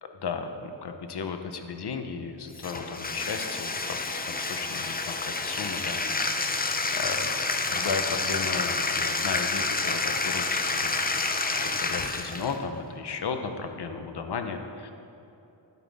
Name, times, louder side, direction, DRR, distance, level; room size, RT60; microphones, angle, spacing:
voice 1, 0.0-6.4 6.9-7.3 7.7-11.3 11.8-14.9, left 5 dB, 55° left, 6 dB, 0.9 m, -35 dB
Bathtub (filling or washing), 2.6-12.6, left 3 dB, 20° left, 0.5 m, -29 dB
12.5 x 10.0 x 3.6 m, 2.8 s
wide cardioid pair, 165°, 47 cm